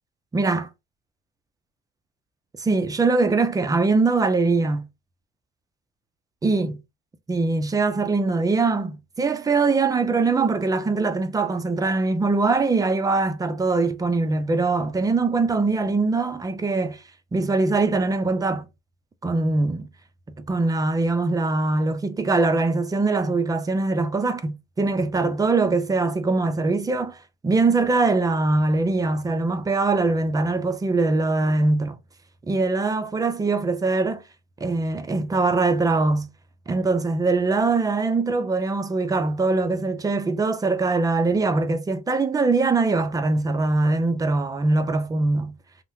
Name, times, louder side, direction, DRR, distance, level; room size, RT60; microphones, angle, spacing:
voice 1, 0.3-0.7 2.6-4.9 6.4-6.8 7.3-17.0 17.3-18.7 19.2-19.9 20.4-27.2 27.4-32.0 32.5-34.2 34.6-36.3 36.7-45.5, right 3 dB, 20° right, 0.5 m, -22 dB
3.3 x 2.1 x 3.0 m
cardioid pair, 110°, 17 cm